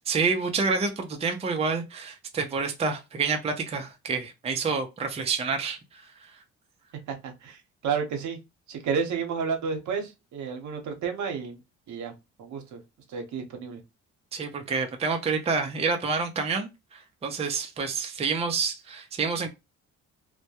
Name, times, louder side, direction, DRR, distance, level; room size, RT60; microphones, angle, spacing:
voice 1, 0.1-6.3 14.3-19.5, right 4 dB, 20° right, 0.5 m, -28 dB
voice 2, 7.1-8.4 8.7-11.6 11.9-12.1 12.4-12.8 13.1-13.8, right 6 dB, 70° right, 0.8 m, -31 dB
2.2 x 2.1 x 2.8 m
cardioid pair, 90°, 30 cm